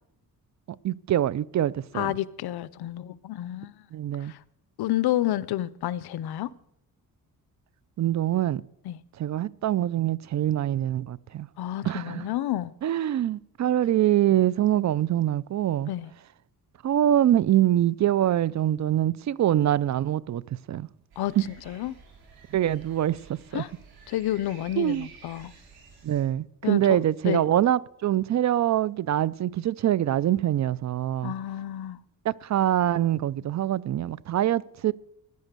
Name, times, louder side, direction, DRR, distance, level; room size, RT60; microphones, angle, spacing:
voice 1, 0.8-2.1 3.9-4.3 8.0-8.6 9.2-11.5 11.8-12.3 12.8-15.9 16.8-20.4 20.7-20.9 21.4-21.5 22.5-23.6 24.8-25.1 26.0-31.3 32.2-34.9, right 12 dB, 50° right, 0.4 m, -24 dB
voice 2, 1.9-3.7 4.2-4.4 4.8-6.5 8.8-9.0 11.6-12.7 15.9-16.1 21.2-22.0 23.5-23.7 24.1-25.5 26.6-27.4 31.2-32.0, left 13 dB, 85° left, 0.7 m, -30 dB
sound 1, 21.1-26.2, right 5 dB, 80° right, 5.8 m, -51 dB
16.0 x 10.5 x 6.7 m
cardioid pair, 115°, 37 cm